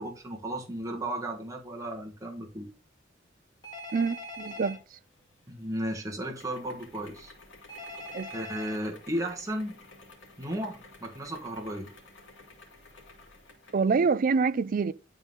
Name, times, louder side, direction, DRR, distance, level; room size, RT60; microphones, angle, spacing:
voice 1, 0.0-2.7 5.5-7.3 8.3-9.8 10.4-11.9, right 1 dB, 20° right, 1.2 m, -34 dB
Telephone, 3.6-4.8 7.7-8.8, left 1 dB, 25° left, 1.8 m, -41 dB
voice 2, 3.9-5.0 8.1-8.3 13.7-14.9, right 5 dB, 45° right, 0.4 m, -26 dB
sound 1, 5.1-13.9, left 3 dB, 75° left, 2.1 m, -53 dB
10.0 x 3.8 x 3.6 m
head